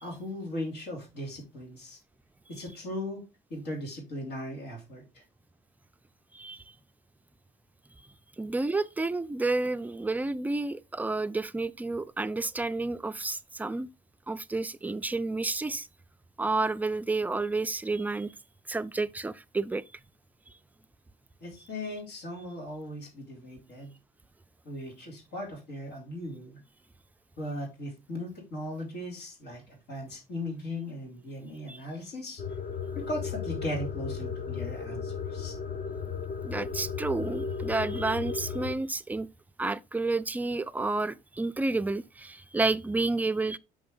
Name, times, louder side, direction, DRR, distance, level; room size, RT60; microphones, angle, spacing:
voice 1, 0.0-2.0 2.5-3.2 3.5-5.2 21.4-23.9 24.6-26.6 27.4-32.4 32.9-35.5, left 1 dB, 85° left, 3.0 m, -38 dB
voice 2, 6.3-6.6 8.4-13.9 14.3-15.9 16.4-18.3 18.7-19.8 31.7-31.8 36.4-39.3 39.6-43.6, right 3 dB, 10° right, 0.3 m, -30 dB
sound 1, 32.4-38.7, left 6 dB, 50° left, 1.1 m, -35 dB
6.0 x 5.2 x 3.7 m
cardioid pair, 110°, 17 cm